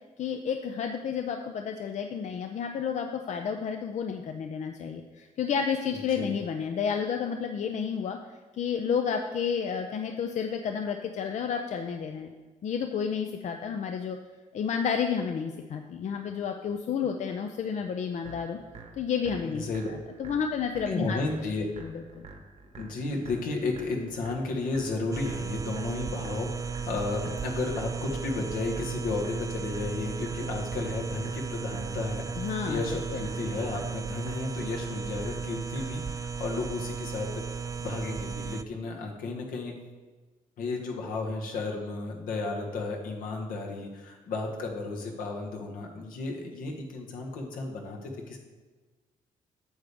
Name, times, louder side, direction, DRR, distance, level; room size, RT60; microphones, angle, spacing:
voice 1, 0.2-8.2 8.5-12.3 12.6-14.2 14.5-18.6 18.9-21.2 21.8-22.3 32.4-33.3, left 7 dB, 55° left, 5 dB, 0.5 m, -31 dB
voice 2, 5.9-6.3 19.4-19.9 20.8-21.7 22.7-39.7 40.6-48.4, left 3 dB, 80° left, 0 dB, 1.4 m, -33 dB
sound 1, 18.2-36.2, right 4 dB, 55° right, 1.2 m, -48 dB
sound 2, 25.1-38.6, right 5 dB, 25° right, 0.3 m, -35 dB
8.8 x 6.8 x 3.5 m, 1.3 s
cardioid pair, 85°, 14 cm